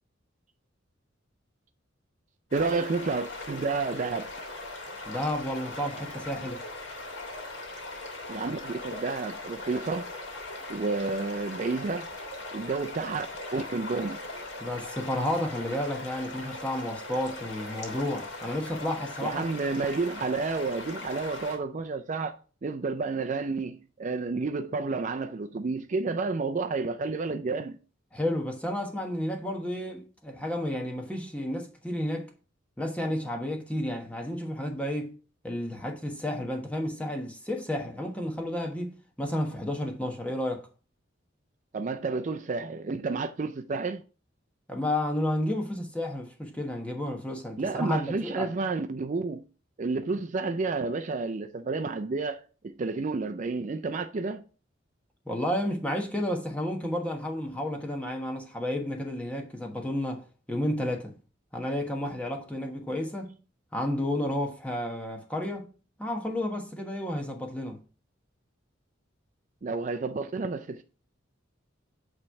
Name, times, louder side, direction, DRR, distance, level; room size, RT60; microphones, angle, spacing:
sound 1, 2.5-21.6, left 2 dB, 65° left, 1.8 m, -40 dB
voice 1, 2.5-4.3 8.3-10.1 10.7-12.1 12.5-13.3 13.5-14.2 19.2-22.4 22.6-27.8 41.7-44.0 47.6-49.4 49.8-54.4 69.6-70.8, right 3 dB, 40° right, 0.4 m, -30 dB
voice 2, 5.1-6.6 14.6-19.5 28.1-32.3 32.8-35.1 35.4-38.9 39.2-40.7 44.7-48.5 55.3-61.1 61.5-63.3 63.7-65.7 66.0-67.8, left 1 dB, 5° left, 1.1 m, -31 dB
8.8 x 3.2 x 5.6 m
head